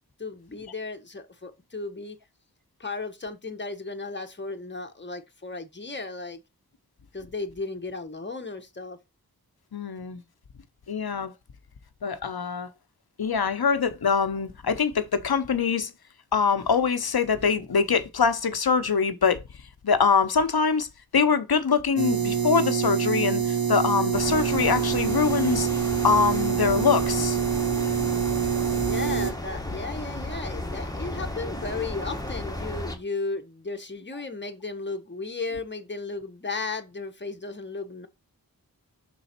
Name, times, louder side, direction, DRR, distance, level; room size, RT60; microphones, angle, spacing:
voice 1, 0.2-2.2 2.8-6.4 7.1-9.0 28.5-38.1, left 3 dB, 30° left, 1.1 m, -35 dB
voice 2, 9.7-10.2 10.9-11.3 12.0-12.7 13.2-15.9 16.3-19.4 19.8-20.9 21.1-25.7 26.0-27.4, left 5 dB, 85° left, 0.8 m, -24 dB
sound 1, 22.0-29.3, right 7 dB, 75° right, 1.2 m, -26 dB
sound 2, 24.1-33.0, left 1 dB, 10° left, 1.3 m, -34 dB
6.2 x 4.0 x 4.3 m
wide cardioid pair, 40°, 37 cm